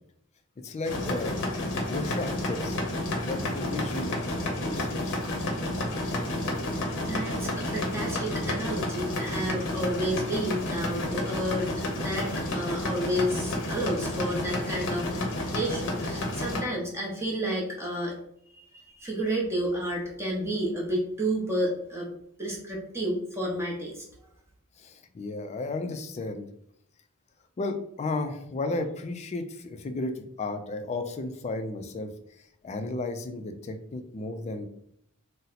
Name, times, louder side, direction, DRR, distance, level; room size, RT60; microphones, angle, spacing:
voice 1, 0.6-1.4 1.9-2.8 3.1-4.3 4.6-5.2 24.8-26.4 27.6-32.1 32.6-34.7, left 2 dB, 30° left, 7 dB, 0.3 m, -33 dB
sound 1, 0.9-16.6, left 1 dB, 55° left, 0.7 m, -31 dB
voice 2, 7.0-11.7 11.9-15.2 15.5-18.1 18.5-22.1 22.4-24.0, right 1 dB, 10° right, -3 dB, 0.7 m, -31 dB
2.8 x 2.0 x 3.9 m, 0.69 s
head